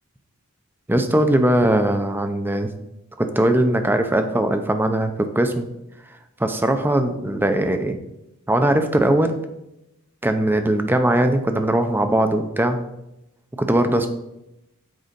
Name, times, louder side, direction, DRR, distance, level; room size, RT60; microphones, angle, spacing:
voice 1, 0.9-2.7 3.2-5.7 6.4-8.0 8.5-9.3 10.2-12.8 13.6-14.1, right 1 dB, 10° right, 7 dB, 0.5 m, -20 dB
6.5 x 4.7 x 5.2 m, 0.88 s
head